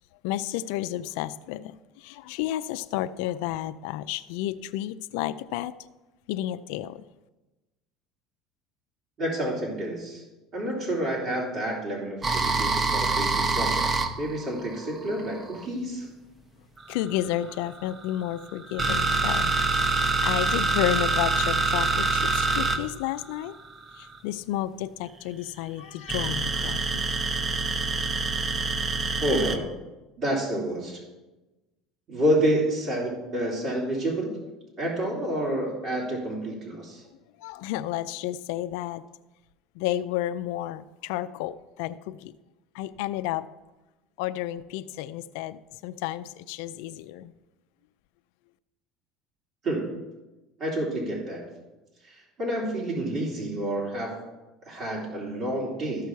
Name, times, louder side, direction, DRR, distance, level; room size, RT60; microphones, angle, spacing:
voice 1, 0.2-5.7 6.3-7.0 16.9-23.6 23.9-26.8 37.4-39.0 39.8-42.3 42.7-43.5 44.2-47.3, left 13 dB, 80° left, 12 dB, 0.4 m, -31 dB
voice 2, 9.2-10.2 10.5-16.1 29.2-29.6 30.2-31.0 32.1-34.3 34.8-37.0 49.6-49.9 50.6-51.5 52.0-54.1 54.7-56.1, right 1 dB, 50° right, -4 dB, 3.1 m, -29 dB
sound 1, 12.2-15.7 16.8-24.2 26.1-29.6, right 3 dB, 25° right, 0.9 m, -26 dB
14.0 x 5.7 x 4.6 m, 1.1 s
supercardioid pair, 115°, 0 cm